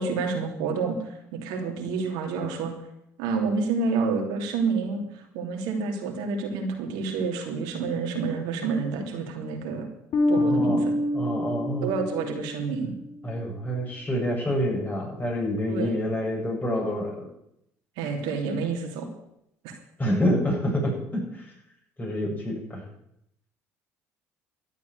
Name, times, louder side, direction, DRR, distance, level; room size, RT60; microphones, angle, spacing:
voice 1, 0.0-2.7 3.2-9.9 10.3-10.9 11.8-13.0 15.7-16.0 18.0-19.1 19.6-19.7 20.3-20.4, right 4 dB, 80° right, 2 dB, 2.9 m, -29 dB
Bass guitar, 10.1-13.1, left 1 dB, 60° left, 2.8 m, -26 dB
voice 2, 10.3-10.8 11.1-11.9 13.2-17.3 20.0-21.5 22.0-22.8, equal, 25° left, -2 dB, 8.0 m, -27 dB
13.0 x 8.3 x 9.4 m, 0.79 s
supercardioid pair, 70°, 7 cm